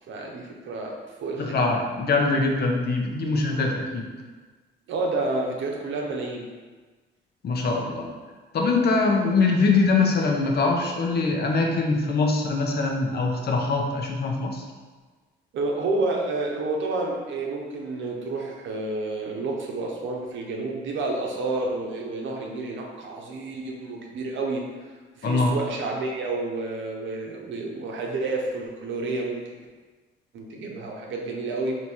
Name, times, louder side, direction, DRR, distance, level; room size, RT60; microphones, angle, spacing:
voice 1, 0.1-1.6 4.9-6.5 15.5-24.6 25.2-29.5 30.3-31.8, right 2 dB, 70° right, 0 dB, 0.8 m, -30 dB
voice 2, 1.4-4.1 7.4-8.1 8.5-14.6 25.2-25.6, left 3 dB, 55° left, 1 dB, 0.8 m, -23 dB
3.4 x 2.9 x 4.4 m, 1.4 s
cardioid pair, 90°, 20 cm